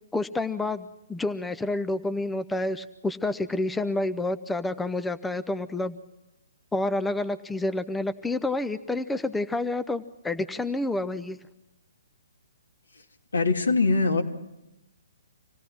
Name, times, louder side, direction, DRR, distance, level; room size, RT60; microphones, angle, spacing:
voice 1, 0.1-6.0 6.7-11.4, left 2 dB, 5° left, 12 dB, 0.7 m, -29 dB
voice 2, 13.3-14.2, left 3 dB, 80° left, 3 dB, 2.8 m, -22 dB
26.0 x 17.0 x 6.1 m, 0.95 s
figure-of-eight pair, 130°, 0 cm